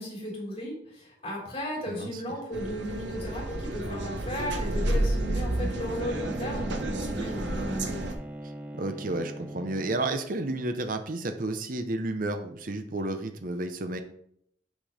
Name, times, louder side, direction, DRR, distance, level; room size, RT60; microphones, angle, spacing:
voice 1, 0.0-8.1, equal, 30° left, -4 dB, 3.4 m, -35 dB
voice 2, 1.9-2.2 8.7-14.0, right 2 dB, 45° right, 7 dB, 0.7 m, -31 dB
sound 1, 2.5-8.1, right 1 dB, 75° right, 1.1 m, -30 dB
Bowed string instrument, 5.7-10.4, right 1 dB, 5° right, 0.6 m, -41 dB
6.3 x 6.1 x 5.0 m, 0.69 s
head